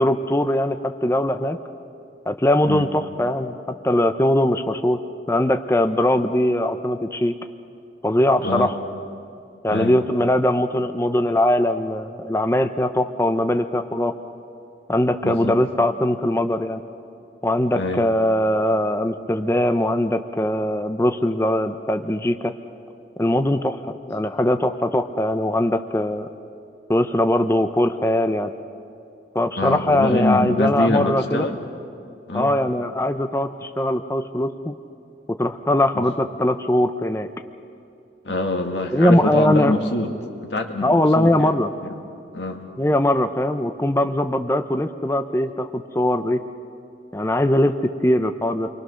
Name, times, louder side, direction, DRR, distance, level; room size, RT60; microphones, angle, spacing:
voice 1, 0.0-1.6 2.3-5.0 5.3-7.3 8.0-8.8 9.6-14.1 14.9-16.8 17.4-22.5 23.2-26.3 26.9-28.5 29.3-31.5 32.3-34.7 35.3-37.3 38.9-39.7 40.8-41.7 42.8-46.4 47.1-48.7, left 1 dB, 15° left, 8 dB, 0.6 m, -21 dB
voice 2, 8.4-8.7 9.7-10.0 15.2-15.6 17.7-18.1 29.6-31.6 32.3-32.5 35.9-36.0 38.2-40.1 40.4-41.5 41.8-41.9 42.3-42.6, left 2 dB, 90° left, 3 dB, 2.2 m, -24 dB
29.5 x 23.5 x 6.4 m, 2.6 s
head